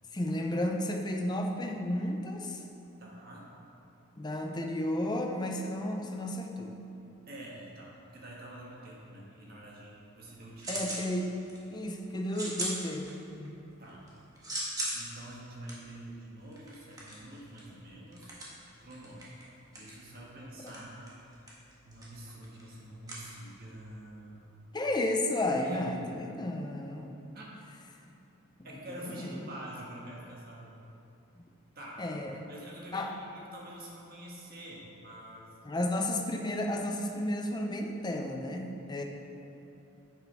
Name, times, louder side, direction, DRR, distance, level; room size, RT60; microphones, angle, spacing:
voice 1, 0.1-2.6 4.2-6.8 10.7-11.3 11.7-13.6 24.7-27.1 28.1-28.2 28.9-29.3 32.0-32.5 32.9-33.1 35.6-39.0, left 1 dB, 20° left, 3 dB, 0.6 m, -33 dB
voice 2, 3.0-3.5 7.3-10.7 13.8-14.1 14.4-18.4 18.7-19.2 19.7-21.0 21.3-21.5 21.8-24.5 25.6-25.9 27.3-27.5 28.6-30.8 31.7-32.0 32.5-35.5, right 1 dB, 45° right, -4 dB, 1.7 m, -47 dB
sound 1, 9.9-11.1 11.4-11.8 12.3-13.5 13.8-23.9, right 1 dB, 15° right, 1.5 m, -40 dB
10.0 x 8.3 x 3.5 m, 2.8 s
head